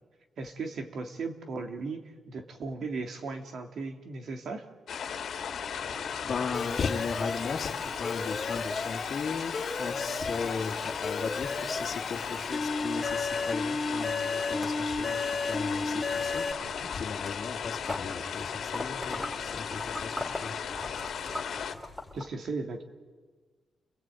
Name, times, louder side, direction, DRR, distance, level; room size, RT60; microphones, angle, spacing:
voice 1, 0.4-4.7 16.6-16.9 21.7-21.8 22.1-22.8, right 3 dB, 65° right, 5 dB, 3.0 m, -37 dB
sound 1, 4.9-21.8, left 7 dB, 75° left, 2.3 m, -36 dB
voice 2, 5.1-5.8 6.2-20.7, left 5 dB, 50° left, 2 dB, 2.6 m, -37 dB
sound 2, 5.5-11.8 12.1-15.1 15.5-22.2, left 2 dB, ahead, 3.1 m, -43 dB
Alarm, 6.5-16.5, left 3 dB, 20° left, 2.8 m, -34 dB
29.5 x 21.5 x 9.3 m, 1.4 s
wide cardioid pair, 125°, 0 cm